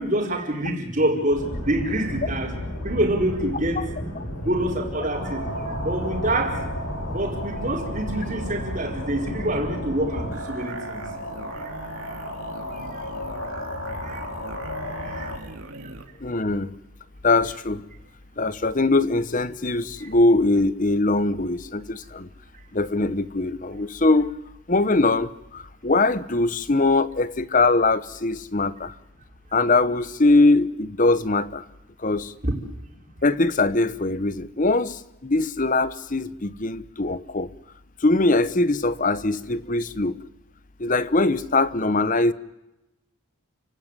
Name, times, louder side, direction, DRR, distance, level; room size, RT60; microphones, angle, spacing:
voice 1, 0.0-2.5 2.8-3.8 4.4-5.5 5.8-6.7 7.1-11.0 11.6-11.7 12.7-13.1 14.0-14.2 15.0-15.4 20.0-20.1 32.4-32.5, right 1 dB, 35° right, 1 dB, 4.7 m, -26 dB
sound 1, 1.3-10.4, equal, 85° left, 6.6 m, -33 dB
sound 2, 5.1-15.4, left 1 dB, 60° left, 4.7 m, -35 dB
sound 3, 10.3-16.1, right 3 dB, 75° right, 2.7 m, -41 dB
voice 2, 16.2-16.7 17.2-17.8 18.4-22.3 22.7-24.3 24.7-28.9 29.5-31.6 32.0-32.3 33.2-37.5 38.0-40.2 40.8-42.3, left 2 dB, 35° left, 16 dB, 0.9 m, -22 dB
30.0 x 17.0 x 9.8 m, 0.95 s
head